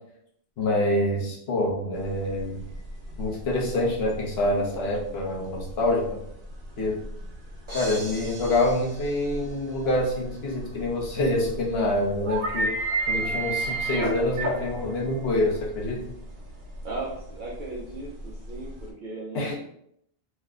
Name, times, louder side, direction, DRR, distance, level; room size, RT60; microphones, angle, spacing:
voice 1, 0.6-2.6 3.2-6.1 6.8-7.0 7.7-12.7 13.1-16.0 19.3-19.5, left 1 dB, 75° left, -2 dB, 1.1 m, -26 dB
sound 1, 2.0-18.9, right 2 dB, 80° right, 1.0 m, -33 dB
sound 2, 7.7-9.9, right 2 dB, 30° right, 0.9 m, -42 dB
voice 2, 16.8-19.5, right 2 dB, 55° right, -4 dB, 0.7 m, -36 dB
3.3 x 2.1 x 3.6 m, 0.72 s
omnidirectional pair, 1.1 m